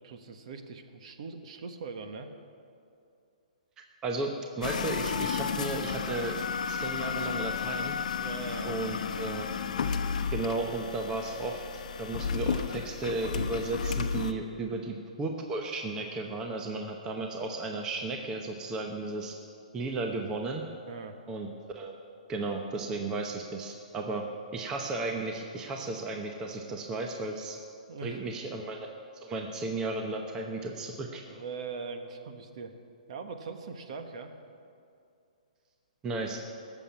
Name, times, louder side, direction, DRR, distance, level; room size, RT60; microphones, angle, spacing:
voice 1, 0.0-2.3 8.2-8.8 20.9-21.2 27.9-28.2 31.3-32.7 33.1-34.3, right 4 dB, 50° right, 6 dB, 1.3 m, -41 dB
voice 2, 4.0-6.4 6.7-8.0 8.6-9.5 10.3-19.4 19.7-20.6 21.3-21.5 21.7-21.9 22.3-24.3 24.5-27.6 28.0-28.9 29.2-31.2 36.0-36.4, right 3 dB, 15° right, 2 dB, 0.8 m, -34 dB
sound 1, 4.6-14.3, left 6 dB, 65° left, 0.9 m, -33 dB
17.5 x 7.3 x 8.5 m, 2.5 s
hypercardioid pair, 160°, 4 cm